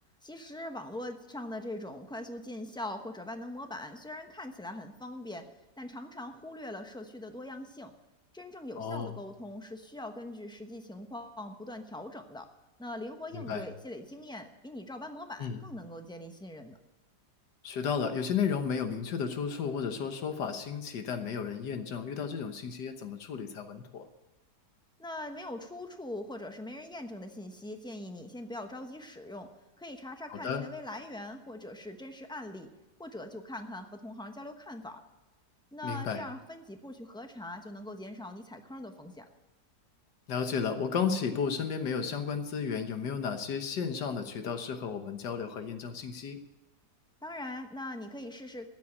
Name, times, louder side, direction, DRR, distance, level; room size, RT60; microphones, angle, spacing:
voice 1, 0.2-5.4 5.8-7.9 8.3-12.5 12.8-16.8 25.0-29.5 29.8-32.7 33.0-35.0 35.7-39.3 47.2-48.7, left 1 dB, 5° left, 5 dB, 0.7 m, -42 dB
voice 2, 8.8-9.2 13.3-13.7 15.4-15.6 17.6-24.0 30.3-30.6 35.8-36.2 40.3-46.4, left 6 dB, 75° left, 7 dB, 1.7 m, -33 dB
13.5 x 8.3 x 8.7 m, 1.0 s
omnidirectional pair, 1.9 m